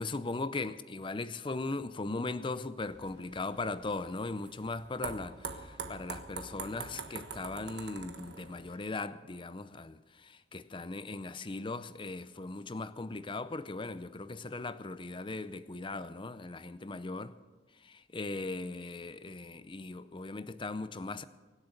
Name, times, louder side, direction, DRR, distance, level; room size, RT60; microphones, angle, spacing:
voice 1, 0.0-17.3 17.8-21.2, left 3 dB, 30° left, 0.6 m, -38 dB
sound 1, 2.8-8.8, right 5 dB, 65° right, 1.5 m, -44 dB
24.0 x 8.1 x 6.6 m
head